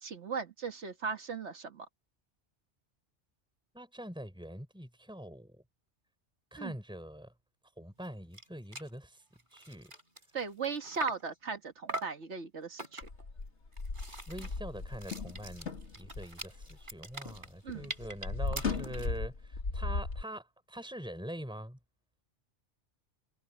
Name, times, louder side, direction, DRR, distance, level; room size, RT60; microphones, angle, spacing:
voice 1, 0.0-1.9 6.6-6.8 10.3-13.1 17.6-17.9, right 5 dB, 75° right, 1.9 m, -38 dB
voice 2, 3.7-5.6 6.5-7.3 7.8-9.2 9.5-9.9 14.3-15.7 16.0-21.8, right 1 dB, 5° right, 4.4 m, -44 dB
sound 1, 8.0-8.1 8.3-8.5 8.7-8.9 9.4-11.3 11.9-12.2 12.8-13.3 13.7-19.2, right 2 dB, 45° right, 4.6 m, -43 dB
sound 2, 13.0-17.4 17.7-20.2, left 3 dB, 75° left, 2.4 m, -37 dB
omnidirectional pair, 1.2 m